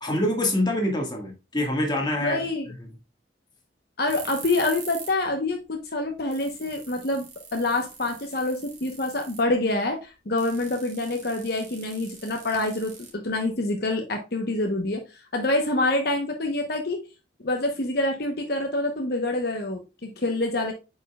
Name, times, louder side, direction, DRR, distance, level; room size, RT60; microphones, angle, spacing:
voice 1, 0.0-2.4, left 1 dB, 25° left, 1.7 m, -25 dB
voice 2, 2.2-2.7 4.0-7.2 7.5-17.0 17.4-20.7, left 2 dB, 55° left, 1.0 m, -26 dB
sound 1, 4.1-5.2 5.5-5.6 6.0-6.1 6.3-9.5 10.4-13.5, right 5 dB, 45° right, 2.7 m, -43 dB
8.3 x 5.4 x 2.3 m
head